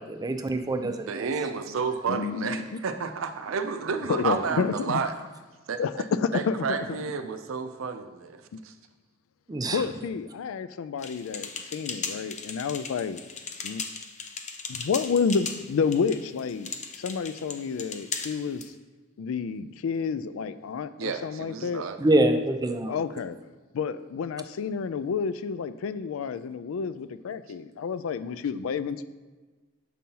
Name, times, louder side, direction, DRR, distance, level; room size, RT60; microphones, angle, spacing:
voice 1, 0.0-1.3 4.5-4.6 9.5-9.8 22.0-23.0, right 1 dB, 20° right, 7 dB, 0.4 m, -25 dB
voice 2, 1.0-5.1 5.7-5.8 6.3-8.7 21.0-22.0, right 5 dB, 85° right, 8 dB, 0.5 m, -31 dB
voice 3, 2.1-2.8 4.1-5.0 5.8-7.2 8.5-8.6 9.7-13.2 13.6-13.8 14.7-18.6 19.2-21.8 22.9-23.4 23.7-29.0, left 5 dB, 90° left, 13 dB, 0.4 m, -30 dB
sound 1, 11.0-18.7, left 5 dB, 35° left, 0.5 m, -38 dB
7.4 x 5.4 x 2.8 m, 1.3 s
head